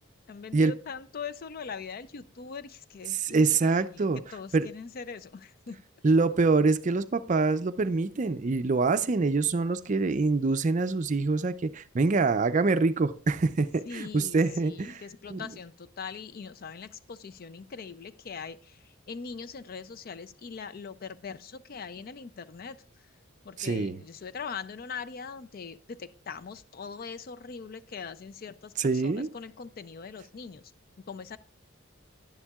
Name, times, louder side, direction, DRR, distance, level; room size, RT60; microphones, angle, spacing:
voice 1, 0.3-5.8 13.9-22.8 23.4-30.7 31.1-31.4, left 5 dB, 45° left, 0.4 m, -41 dB
voice 2, 3.1-4.2 4.5-4.7 6.0-15.0 15.3-15.5 23.6-24.0 28.8-29.3, right 3 dB, 35° right, 0.4 m, -25 dB
10.5 x 9.9 x 2.3 m
head